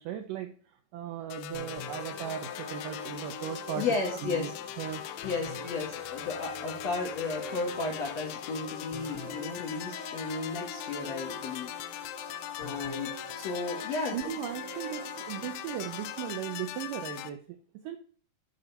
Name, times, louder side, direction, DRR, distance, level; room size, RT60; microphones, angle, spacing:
voice 1, 0.0-3.9 4.2-4.5 4.8-5.0 14.1-18.0, right 10 dB, 80° right, 7 dB, 1.9 m, -37 dB
sound 1, 1.3-17.3, left 13 dB, 90° left, 2.6 m, -41 dB
sound 2, 1.5-16.3, equal, 20° left, 1.1 m, -44 dB
voice 2, 3.8-4.5 5.2-11.7 12.0-12.1 12.6-14.2, left 4 dB, 60° left, 1 dB, 1.9 m, -34 dB
12.0 x 4.2 x 5.4 m, 0.43 s
omnidirectional pair, 4.5 m